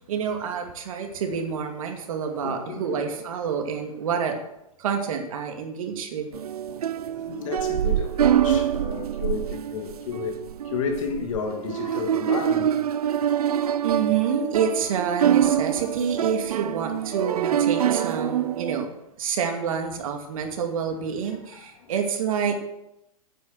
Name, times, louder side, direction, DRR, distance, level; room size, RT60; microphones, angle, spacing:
voice 1, 0.0-4.4 4.8-6.3 13.8-18.9 19.2-22.6, right 7 dB, 65° right, 2.4 m, -28 dB
voice 2, 2.4-3.2 4.1-4.2 6.3-6.4 6.7-6.8 7.3-10.4 10.7-12.7 21.3-21.9, left 6 dB, 60° left, 2.6 m, -32 dB
sound 1, 6.3-18.9, right 10 dB, 80° right, 0.6 m, -25 dB
9.4 x 8.6 x 6.6 m
hypercardioid pair, 125°, 19 cm